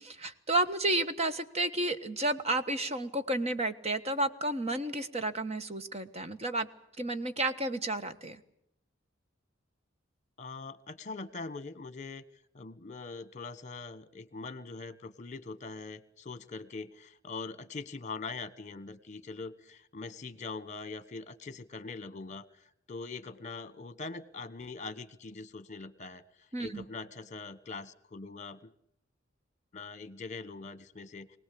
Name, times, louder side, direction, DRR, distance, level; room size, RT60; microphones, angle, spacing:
voice 1, 0.0-6.7 7.0-8.4 26.5-26.8, right 2 dB, 35° right, 9 dB, 1.4 m, -31 dB
voice 2, 10.4-12.2 12.5-28.7 29.7-31.4, left 3 dB, 40° left, 15 dB, 1.3 m, -42 dB
24.5 x 18.5 x 8.6 m, 0.74 s
head